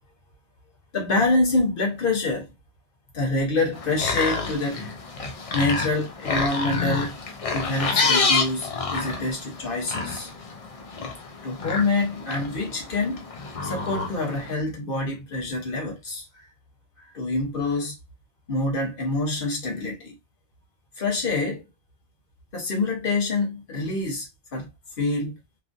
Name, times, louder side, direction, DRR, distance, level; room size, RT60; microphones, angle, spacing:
voice 1, 0.9-2.5 3.1-5.0 5.5-7.1 7.5-10.3 11.4-13.3 13.6-16.4 17.1-17.9 18.5-20.2 21.0-21.6 22.5-24.3 24.5-24.7 25.0-25.4, left 2 dB, 45° left, 1.2 m, -26 dB
sound 1, 3.7-14.5, left 4 dB, 60° left, 0.3 m, -28 dB
3.1 x 2.3 x 2.6 m
omnidirectional pair, 1.3 m